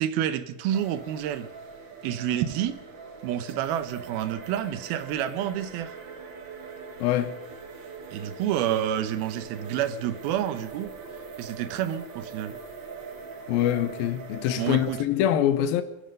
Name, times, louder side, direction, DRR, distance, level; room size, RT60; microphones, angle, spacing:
voice 1, 0.0-1.5 2.0-2.8 3.2-5.9 8.1-10.9 11.4-12.6 14.6-15.0, right 11 dB, 80° right, 2.7 m, -29 dB
sound 1, 0.7-15.0, right 4 dB, 60° right, 1.2 m, -42 dB
voice 2, 7.0-7.4 13.5-15.8, left 11 dB, 75° left, 2.5 m, -24 dB
27.0 x 10.0 x 5.3 m
omnidirectional pair, 4.4 m